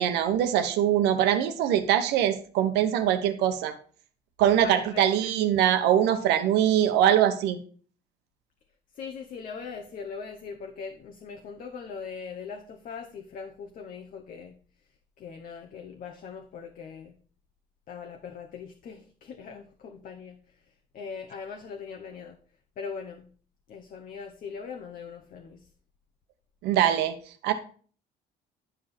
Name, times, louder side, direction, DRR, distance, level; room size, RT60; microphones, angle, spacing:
voice 1, 0.0-3.7 4.4-7.6 26.6-27.2 27.4-27.5, right 10 dB, 90° right, 9 dB, 1.0 m, -23 dB
voice 2, 4.6-5.1 8.9-14.5 15.2-17.1 17.9-20.4 20.9-22.4 22.8-23.3 23.7-25.7, left 5 dB, 55° left, 4 dB, 0.9 m, -40 dB
9.9 x 5.1 x 4.3 m, 0.43 s
cardioid pair, 110°, 17 cm